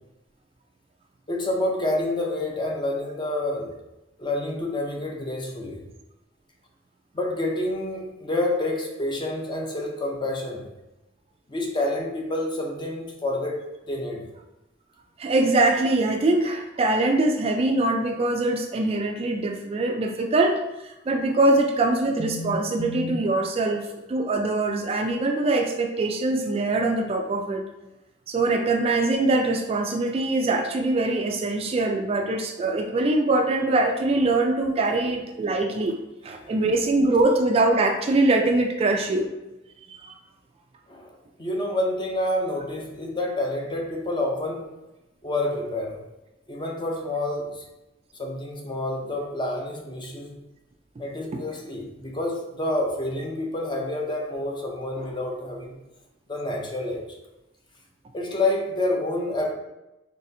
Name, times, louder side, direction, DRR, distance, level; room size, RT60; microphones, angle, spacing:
voice 1, 1.3-3.8 4.2-5.8 7.1-10.7 11.5-13.6 13.9-14.3 34.1-34.3 34.9-35.2 36.4-36.7 40.9-41.1 41.4-44.7 45.2-46.0 46.5-47.6 48.1-50.4 51.0-55.8 56.3-57.2 58.1-59.5, left 1 dB, 25° left, 0 dB, 0.6 m, -28 dB
voice 2, 15.2-27.6 28.3-36.0 36.2-39.3 40.0-40.2 51.3-51.4, right 2 dB, 30° right, 3 dB, 0.3 m, -23 dB
4.0 x 3.3 x 2.7 m, 0.97 s
head